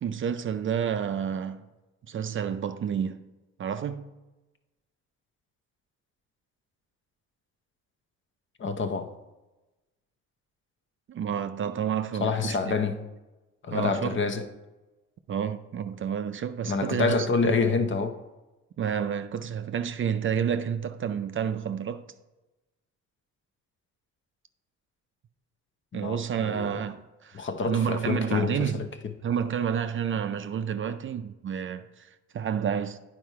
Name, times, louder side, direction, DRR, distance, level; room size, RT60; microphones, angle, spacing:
voice 1, 0.0-1.7 2.1-3.2 3.6-4.0 11.1-12.8 13.7-14.2 15.3-17.5 18.8-22.1 25.9-28.8 29.2-33.0, right 8 dB, 45° right, 0.4 m, -30 dB
voice 2, 8.6-9.1 12.2-13.0 13.6-14.5 16.7-18.2 25.9-26.8 27.3-29.1, left 4 dB, 40° left, 0.7 m, -27 dB
9.4 x 4.4 x 4.6 m
cardioid pair, 90°, 30 cm